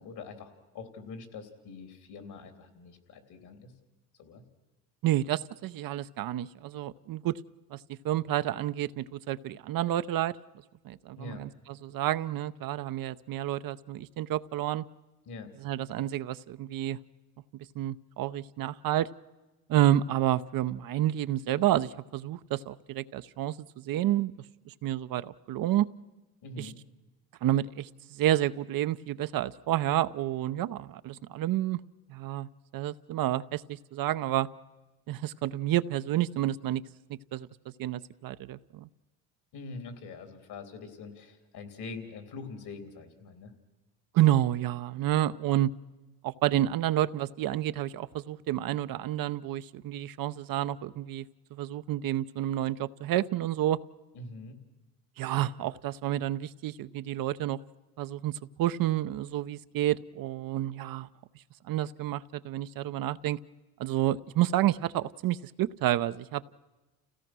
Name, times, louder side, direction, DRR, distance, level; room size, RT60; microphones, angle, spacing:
voice 1, 0.0-3.7 4.2-4.4 11.2-11.4 15.3-15.5 26.4-26.8 39.5-43.5 54.1-54.6, left 4 dB, 65° left, 7 dB, 3.5 m, -44 dB
voice 2, 5.0-7.4 7.7-7.8 8.0-10.3 10.8-11.5 11.8-14.9 15.6-17.0 17.5-19.1 19.7-24.3 24.7-25.9 26.6-26.7 27.4-31.8 32.1-34.5 35.1-36.8 37.3-37.5 37.8-38.9 44.1-45.7 46.2-51.2 51.5-53.8 55.2-57.6 58.0-61.1 61.6-63.4 63.8-66.5, right 13 dB, 55° right, 13 dB, 0.7 m, -29 dB
29.5 x 16.5 x 6.2 m, 1.1 s
supercardioid pair, 75°, 41 cm